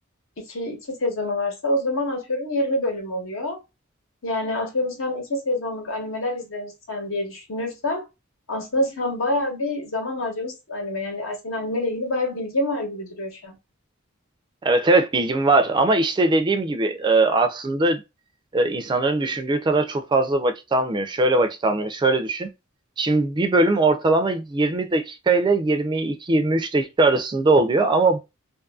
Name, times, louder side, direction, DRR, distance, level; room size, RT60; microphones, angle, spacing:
voice 1, 0.5-3.6 4.2-8.0 8.5-13.6, left 1 dB, 70° left, 1.0 m, -27 dB
voice 2, 14.6-18.0 18.5-22.5 23.0-28.2, right 2 dB, 20° right, 0.3 m, -20 dB
2.6 x 2.4 x 2.2 m
head